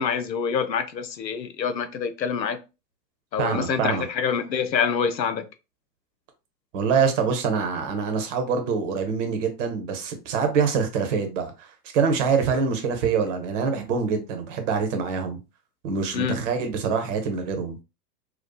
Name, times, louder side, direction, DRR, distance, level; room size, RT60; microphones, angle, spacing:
voice 1, 0.0-2.6 3.3-5.4 16.1-16.4, left 6 dB, 85° left, 0.6 m, -26 dB
voice 2, 3.4-4.0 6.7-15.4 15.8-17.8, right 5 dB, 45° right, 0.9 m, -25 dB
2.6 x 2.3 x 2.2 m
figure-of-eight pair, 100°, 49 cm